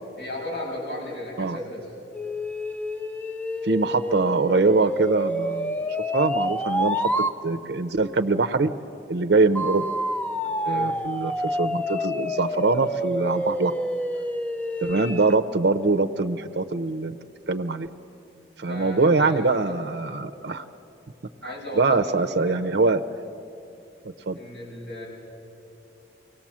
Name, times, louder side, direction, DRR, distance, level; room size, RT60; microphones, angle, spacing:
voice 1, 0.2-1.9 10.6-11.0 18.7-19.8 21.4-22.7 24.4-25.1, left 1 dB, 60° left, -5 dB, 6.9 m, -35 dB
sound 1, 2.1-7.4 9.6-15.4, equal, 10° left, 0.4 m, -28 dB
voice 2, 3.6-5.8 6.1-7.1 7.4-8.7 9.1-9.8 10.7-11.3 11.6-13.7 14.8-17.2 17.5-17.9 18.6-20.6 21.4-23.0 24.3-24.4, right 3 dB, 60° right, 8 dB, 0.6 m, -23 dB
23.5 x 18.0 x 7.4 m, 2.8 s
head